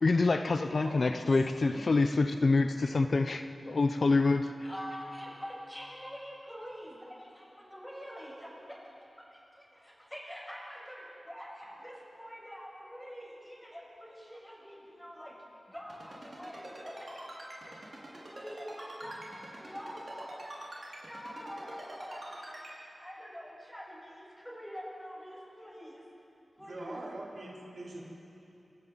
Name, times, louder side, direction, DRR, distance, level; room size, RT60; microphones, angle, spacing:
voice 1, 0.0-4.5, left 3 dB, 55° left, 7 dB, 0.8 m, -26 dB
voice 2, 0.7-1.8 26.6-28.0, right 2 dB, 85° right, -5 dB, 4.5 m, -44 dB
voice 3, 4.6-8.5 9.3-15.3 15.7-17.1 17.6-18.0 18.3-19.2 19.6-26.0 26.6-27.1, equal, 5° left, -5 dB, 7.3 m, -46 dB
Ringtone, 15.9-22.7, right 1 dB, 45° right, 5.6 m, -45 dB
28.0 x 26.5 x 4.2 m, 2.9 s
wide cardioid pair, 115°, 0 cm